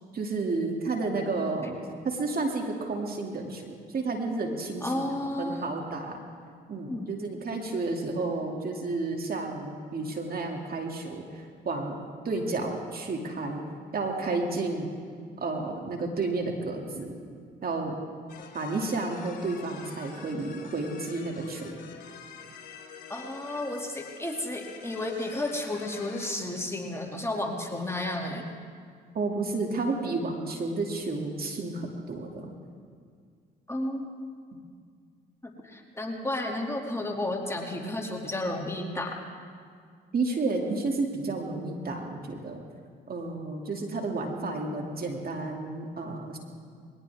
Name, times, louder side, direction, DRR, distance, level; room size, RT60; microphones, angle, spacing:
voice 1, 0.1-1.8 2.0-5.1 5.4-6.2 6.7-13.6 13.9-14.9 15.4-17.1 17.6-18.0 18.5-21.8 29.1-32.5 40.1-42.6 43.1-46.4, right 3 dB, 45° right, 1 dB, 2.5 m, -31 dB
voice 2, 4.8-5.6 6.9-7.1 23.1-28.5 33.7-34.0 35.4-39.2, left 1 dB, 15° left, 0 dB, 2.5 m, -32 dB
sound 1, 18.3-26.3, left 6 dB, 50° left, 3.4 m, -47 dB
21.5 x 18.5 x 3.6 m, 2.1 s
supercardioid pair, 55°, 21 cm